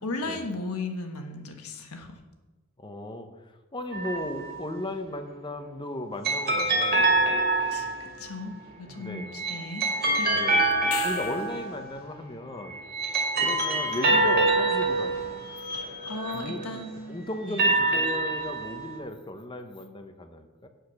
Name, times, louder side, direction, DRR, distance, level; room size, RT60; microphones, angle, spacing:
voice 1, 0.0-2.2 7.7-10.5 16.1-17.6, left 3 dB, 90° left, 4 dB, 1.4 m, -36 dB
voice 2, 2.8-7.4 7.8-7.9 8.9-9.3 10.3-12.8 13.4-15.4 16.3-16.8 17.1-20.7, left 1 dB, 20° left, 7 dB, 0.9 m, -36 dB
sound 1, 3.9-4.7 6.2-8.2 9.1-11.9 12.7-16.8 17.3-18.9, right 2 dB, 45° right, 2.3 m, -26 dB
sound 2, 10.7-11.7 16.4-16.5, left 11 dB, 65° left, 0.6 m, -36 dB
8.4 x 6.5 x 6.5 m, 1.2 s
head